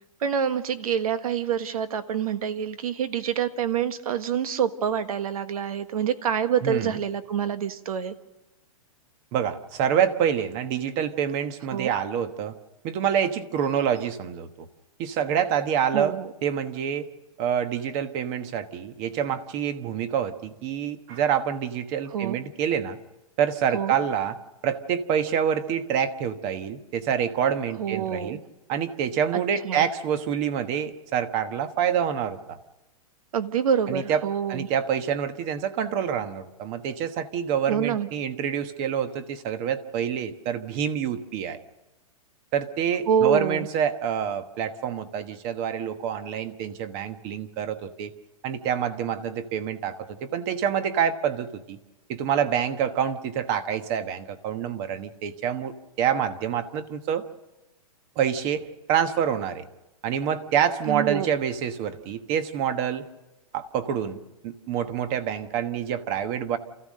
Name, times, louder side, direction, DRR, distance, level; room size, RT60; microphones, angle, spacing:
voice 1, 0.2-8.1 11.7-11.9 15.9-16.3 22.1-22.4 23.7-23.9 27.8-28.4 29.3-29.9 33.3-34.7 37.7-38.1 43.1-43.7 60.9-61.3, right 8 dB, 70° right, 10 dB, 1.6 m, -26 dB
voice 2, 6.6-7.0 9.3-12.5 12.8-14.7 15.0-17.0 17.4-23.0 23.4-24.4 24.6-28.4 28.7-32.6 33.9-34.2 34.5-41.6 42.5-48.1 48.4-51.8 52.1-57.3 58.2-59.7 60.0-63.1 63.5-66.6, right 8 dB, 30° right, 10 dB, 1.2 m, -27 dB
28.5 x 15.0 x 6.5 m, 1.0 s
hypercardioid pair, 160°, 19 cm